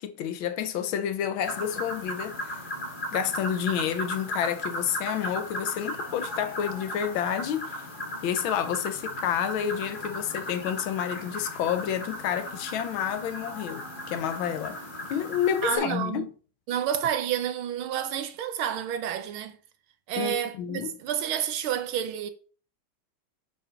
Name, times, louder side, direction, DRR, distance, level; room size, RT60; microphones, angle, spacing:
voice 1, 0.0-2.6 3.1-7.8 8.2-14.8 15.1-16.3 20.2-21.0, left 9 dB, 75° left, 1.5 m, -29 dB
sound 1, 1.4-15.8, left 1 dB, 30° left, 2.4 m, -36 dB
voice 2, 15.6-16.3 16.7-19.6 20.1-22.3, right 9 dB, 85° right, 1.7 m, -29 dB
5.5 x 5.2 x 5.0 m
omnidirectional pair, 2.3 m